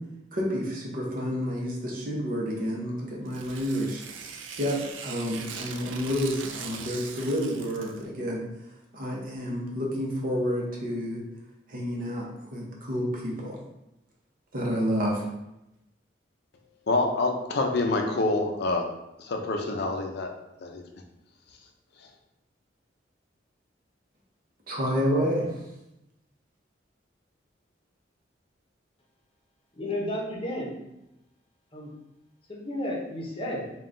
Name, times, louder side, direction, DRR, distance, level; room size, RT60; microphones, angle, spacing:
voice 1, 0.3-4.0 4.6-8.5 8.9-11.2 11.7-13.6 14.5-15.2 24.7-25.5, equal, 50° right, -2 dB, 0.8 m, -29 dB
Tearing, 3.3-8.1, right 6 dB, 85° right, 0.4 m, -40 dB
voice 2, 16.9-18.9 19.2-20.3 20.6-20.8, left 2 dB, 60° left, 3 dB, 0.5 m, -26 dB
voice 3, 29.7-30.7 31.7-31.9 32.5-33.7, left 1 dB, 30° left, -2 dB, 0.8 m, -32 dB
3.7 x 2.3 x 3.7 m, 0.88 s
head